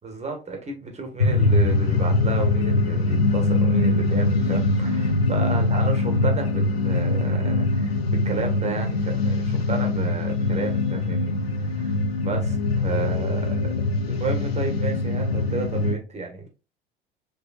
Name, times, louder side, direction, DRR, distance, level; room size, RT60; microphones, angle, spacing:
voice 1, 0.0-8.0 8.2-13.7 14.1-16.5, right 3 dB, 20° right, 1.5 m, -32 dB
sound 1, 1.2-16.0, left 2 dB, 85° left, 0.6 m, -23 dB
5.6 x 3.4 x 2.4 m
figure-of-eight pair, 70°, 30 cm